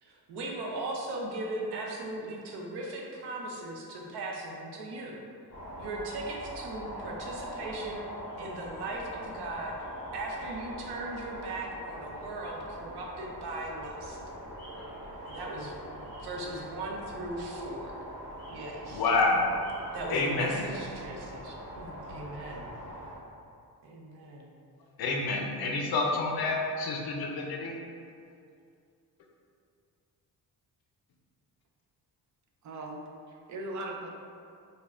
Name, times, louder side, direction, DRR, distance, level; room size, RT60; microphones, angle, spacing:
voice 1, 0.0-5.2 5.8-8.0 8.4-9.7 10.1-14.2 15.3-15.7 16.2-18.0 18.5-19.0 19.9-22.6 23.8-24.5, right 2 dB, 90° right, -1 dB, 0.7 m, -38 dB
sound 1, 5.5-23.1, equal, 45° left, 1.4 m, -42 dB
voice 2, 18.9-19.4 20.1-20.7 25.0-27.7, left 3 dB, 70° left, 0 dB, 0.6 m, -28 dB
voice 3, 32.6-34.1, right 1 dB, 50° right, 0 dB, 0.4 m, -39 dB
5.1 x 2.2 x 2.4 m, 2.4 s
wide cardioid pair, 175°, 38 cm